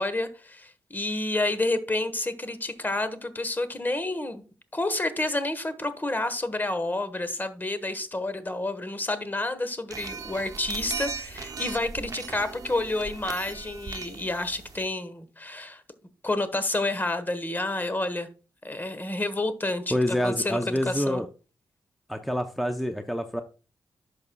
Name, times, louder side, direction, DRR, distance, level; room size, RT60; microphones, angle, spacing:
voice 1, 0.0-4.4 4.7-15.8 16.2-18.3 18.6-21.2, left 2 dB, 25° left, 1.2 m, -29 dB
sound 1, 9.9-14.9, right 4 dB, 50° right, 0.9 m, -38 dB
voice 2, 19.9-21.3 22.1-23.4, equal, ahead, 0.6 m, -27 dB
10.5 x 6.1 x 2.3 m
cardioid pair, 65°, 8 cm